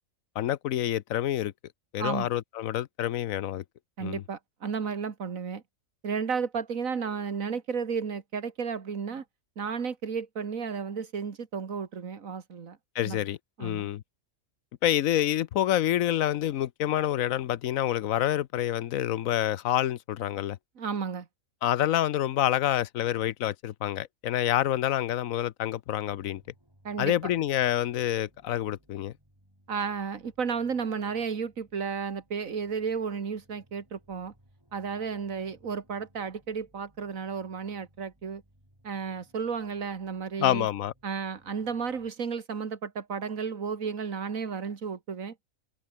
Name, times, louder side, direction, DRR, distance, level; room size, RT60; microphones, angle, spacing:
voice 1, 0.4-1.5 1.9-3.6 4.0-4.2 12.9-14.0 14.8-20.6 21.6-26.4 27.0-29.1 40.4-40.9, left 12 dB, 85° left, 1.1 m, -27 dB
voice 2, 2.0-2.3 4.0-5.6 6.0-9.2 9.6-12.8 13.1-13.2 13.6-13.9 20.8-21.3 26.8-27.1 29.7-34.3 34.7-38.4 38.8-40.7 41.0-45.4, right 6 dB, 85° right, 2.2 m, -33 dB
sound 1, 26.1-42.1, equal, 15° right, 7.8 m, -63 dB
open air
omnidirectional pair, 1.4 m